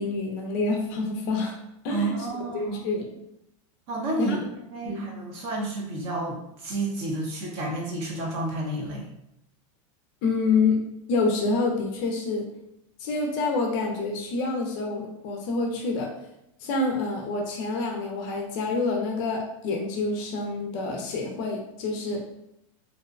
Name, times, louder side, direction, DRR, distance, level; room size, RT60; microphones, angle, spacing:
voice 1, 0.0-1.6 1.8-2.3 2.5-3.2 4.2-4.4 4.8-5.1 10.2-10.8 11.1-12.5 13.0-16.1 16.6-22.2, left 3 dB, 40° left, 1 dB, 0.4 m, -27 dB
voice 2, 1.9-2.9 3.9-4.4 4.7-9.1, right 2 dB, 35° right, -1 dB, 0.6 m, -30 dB
2.6 x 2.0 x 2.4 m, 0.82 s
supercardioid pair, 160°, 17 cm